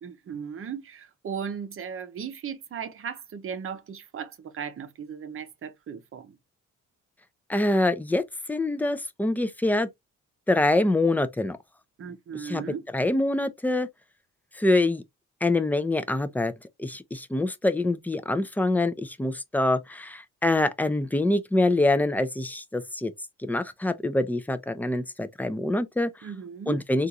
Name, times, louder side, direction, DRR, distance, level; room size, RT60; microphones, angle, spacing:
voice 1, 0.0-6.4 12.0-12.8 26.2-26.8, right 7 dB, 45° right, 0.7 m, -36 dB
voice 2, 7.5-8.2 8.5-9.9 10.5-11.6 12.4-12.6 12.9-13.9 14.6-15.0 15.4-16.5 16.8-23.1 23.4-26.1 26.7-27.1, left 2 dB, 5° left, 0.5 m, -25 dB
3.5 x 2.5 x 2.7 m
cardioid pair, 90°, 30 cm